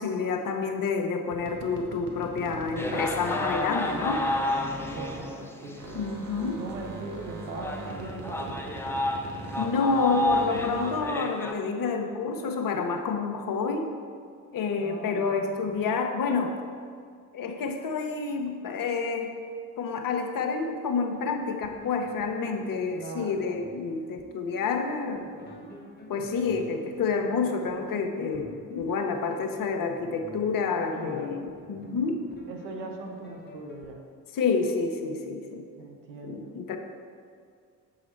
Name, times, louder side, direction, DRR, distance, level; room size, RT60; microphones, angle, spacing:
voice 1, 0.0-4.3 5.9-6.6 9.6-13.9 14.5-16.6 17.3-19.3 19.8-25.3 26.1-32.2 34.3-35.7 36.2-36.8, left 4 dB, 45° left, 5 dB, 0.8 m, -29 dB
sound 1, 1.3-5.5 5.8-11.2, right 2 dB, 60° right, 1.3 m, -41 dB
sound 2, 2.8-5.9 6.4-6.5 7.1-7.2 7.5-11.5, left 1 dB, 5° left, 0.6 m, -30 dB
voice 2, 4.9-6.0 6.6-8.6 14.8-15.9 22.9-23.5 30.9-31.5 32.5-34.0 35.8-36.5, right 3 dB, 80° right, 2 dB, 0.9 m, -40 dB
sound 3, 21.1-33.9, left 2 dB, 20° left, 1.2 m, -49 dB
7.1 x 4.8 x 4.4 m, 2.1 s
figure-of-eight pair, 45°, 49 cm